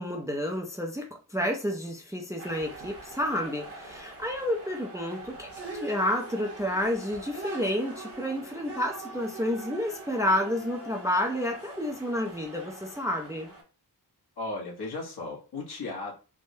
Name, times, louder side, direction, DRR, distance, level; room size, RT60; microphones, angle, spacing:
voice 1, 0.0-5.5 5.7-13.5, left 1 dB, 10° right, 2 dB, 0.4 m, -30 dB
sound 1, 2.4-13.6, right 2 dB, 35° right, 0.9 m, -43 dB
voice 2, 14.4-16.2, left 3 dB, 65° left, -2 dB, 1.2 m, -36 dB
3.4 x 2.1 x 2.6 m, 0.33 s
wide cardioid pair, 110°, 41 cm